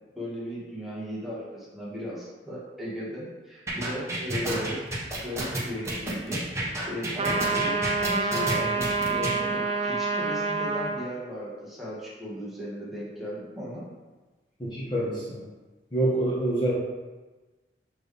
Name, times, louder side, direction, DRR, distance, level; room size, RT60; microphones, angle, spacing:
voice 1, 0.1-13.8, equal, ahead, -8 dB, 1.7 m, -37 dB
sound 1, 3.7-9.4, right 1 dB, 15° right, 1.0 m, -30 dB
sound 2, 7.2-11.0, right 4 dB, 35° right, 0.5 m, -27 dB
voice 2, 14.6-15.4 15.9-16.7, right 1 dB, 25° left, -8 dB, 1.2 m, -26 dB
6.2 x 4.6 x 3.4 m, 1.2 s
head